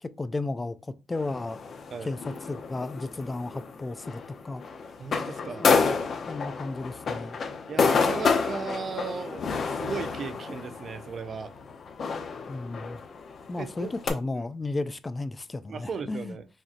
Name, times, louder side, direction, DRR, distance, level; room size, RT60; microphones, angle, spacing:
voice 1, 0.0-1.7 2.0-4.6 5.6-5.9 6.3-7.4 12.5-13.0 13.5-16.4, left 2 dB, 25° left, 0.3 m, -34 dB
sound 1, 1.1-14.1, left 5 dB, 50° left, 0.7 m, -29 dB
voice 2, 5.0-5.8 7.7-11.5 13.6-13.9 14.3-14.4 15.7-16.5, right 5 dB, 50° right, 0.4 m, -36 dB
5.0 x 2.7 x 2.5 m
cardioid pair, 90°, 0 cm